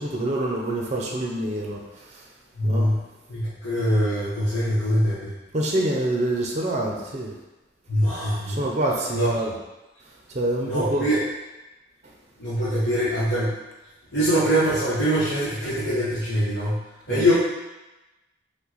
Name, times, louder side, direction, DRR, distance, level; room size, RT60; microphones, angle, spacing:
voice 1, 0.0-1.8 2.6-2.9 5.5-7.3 8.5-9.5 10.3-11.1 17.1-17.3, right 1 dB, 35° right, -1 dB, 0.6 m, -26 dB
voice 2, 2.5-3.0 3.3-5.3 7.9-8.6 9.1-9.3 10.7-11.2 12.4-13.6 14.1-17.3, equal, 60° left, -12 dB, 1.1 m, -23 dB
5.7 x 2.2 x 3.9 m, 1.1 s
head